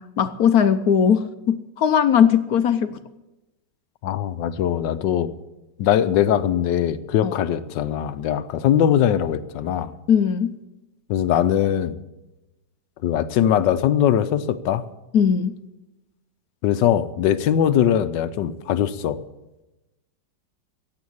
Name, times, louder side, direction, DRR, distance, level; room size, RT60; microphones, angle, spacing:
voice 1, 0.0-3.0 7.2-7.4 10.1-10.6 15.1-15.6, left 8 dB, 65° left, 11 dB, 1.1 m, -19 dB
voice 2, 4.0-5.3 5.8-9.9 11.1-11.9 13.0-14.8 16.6-19.2, left 10 dB, 80° left, 13 dB, 1.4 m, -21 dB
15.5 x 8.3 x 8.6 m, 0.99 s
omnidirectional pair, 1.9 m